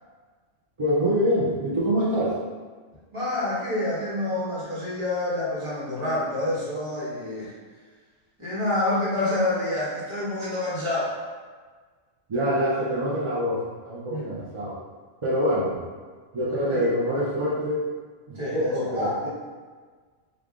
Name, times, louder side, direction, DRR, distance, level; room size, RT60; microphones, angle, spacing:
voice 1, 0.8-2.4 12.3-14.7 15.2-15.8 16.3-17.8 18.5-19.1, equal, 45° right, -7 dB, 0.4 m, -25 dB
voice 2, 3.1-7.5 8.4-11.1 14.1-14.3 16.6-16.9 18.3-19.3, left 1 dB, 25° right, -8 dB, 1.0 m, -27 dB
3.3 x 2.4 x 3.5 m, 1.5 s
omnidirectional pair, 1.3 m